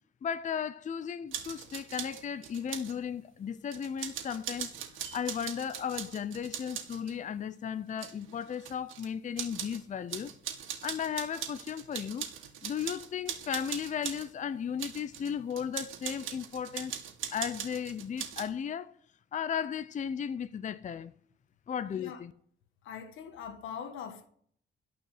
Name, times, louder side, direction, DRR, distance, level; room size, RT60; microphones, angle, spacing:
voice 1, 0.2-4.7 5.1-10.3 10.8-12.3 12.6-16.9 17.3-18.9 19.3-21.1 21.7-22.3, left 8 dB, 40° left, 0.6 m, -35 dB
sound 1, 1.3-2.9 3.7-7.1 7.9-9.1 9.4-9.8 10.1-14.3 14.8-18.4, right 9 dB, 85° right, 2.4 m, -40 dB
voice 2, 21.9-22.2 22.8-24.3, left 7 dB, 85° left, 1.5 m, -42 dB
13.5 x 5.6 x 9.2 m
cardioid pair, 90°, 20 cm